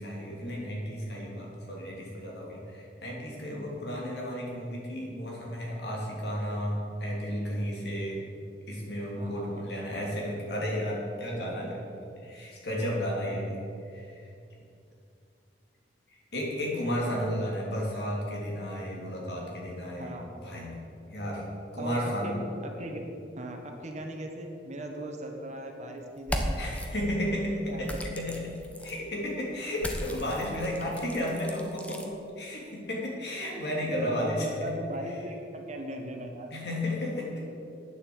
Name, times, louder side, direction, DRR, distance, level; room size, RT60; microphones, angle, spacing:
voice 1, 0.0-8.2 8.7-14.3 16.1-20.2 20.4-20.7 21.1-21.5 21.7-22.4 26.5-34.7 36.5-37.6, equal, 65° left, -3 dB, 3.1 m, -33 dB
voice 2, 9.2-9.5 11.4-11.5 20.0-20.4 21.8-22.3 22.6-23.1 23.4-26.5 27.7-27.9 34.0-36.5, right 1 dB, 40° right, 3 dB, 1.4 m, -38 dB
sound 1, 26.2-26.9 27.8-29.0 29.8-32.1, equal, 10° left, 1.0 m, -35 dB
9.1 x 7.8 x 8.0 m, 2.5 s
head